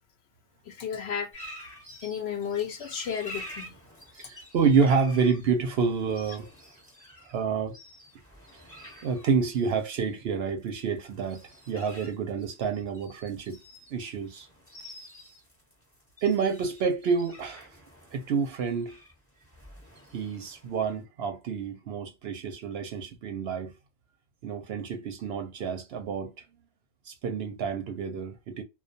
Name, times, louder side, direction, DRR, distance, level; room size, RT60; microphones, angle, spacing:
voice 1, 0.7-1.3 2.0-3.8, left 8 dB, 65° left, 0.7 m, -33 dB
sound 1, 1.3-21.0, equal, 10° left, 0.9 m, -49 dB
voice 2, 4.2-6.5 7.2-7.8 9.0-13.6 13.9-14.5 16.2-17.7 18.1-19.0 20.1-23.7 24.4-26.3 27.1-28.6, right 5 dB, 65° right, 0.7 m, -28 dB
2.3 x 2.2 x 2.5 m
omnidirectional pair, 1.3 m